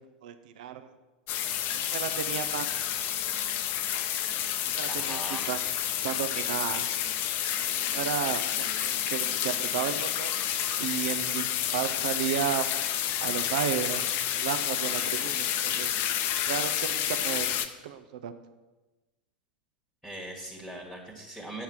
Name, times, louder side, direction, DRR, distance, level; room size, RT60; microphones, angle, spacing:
voice 1, 0.2-0.9 1.7-2.7 4.7-5.2 5.5-5.6 6.0-6.9 7.6-10.4 10.8-11.5 11.7-12.7 13.2-14.0 14.4-15.9 16.5-17.5 17.8-18.3, right 10 dB, 55° right, 10 dB, 0.6 m, -33 dB
sound 1, 1.3-17.7, left 10 dB, 40° left, 0.7 m, -30 dB
voice 2, 4.9-5.5 20.0-21.6, right 1 dB, ahead, 0 dB, 1.6 m, -40 dB
8.2 x 5.7 x 7.7 m, 1.1 s
figure-of-eight pair, 85°, 5 cm